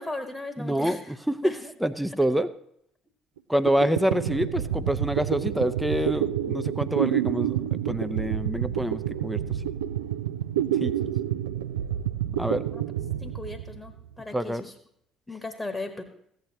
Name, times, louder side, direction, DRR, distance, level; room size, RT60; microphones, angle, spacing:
voice 1, 0.0-1.2 1.4-1.7 12.7-12.8 13.2-14.7 15.3-16.0, left 2 dB, 20° left, 7 dB, 1.3 m, -37 dB
voice 2, 0.6-1.4 1.8-2.5 3.5-9.4 10.8-11.1 12.4-12.7 14.3-14.6, right 1 dB, 5° right, 11 dB, 0.6 m, -27 dB
sound 1, 3.4-3.5 3.7-14.1, right 11 dB, 80° right, 0.4 m, -29 dB
15.5 x 9.4 x 2.9 m, 0.72 s
figure-of-eight pair, 50°, 0 cm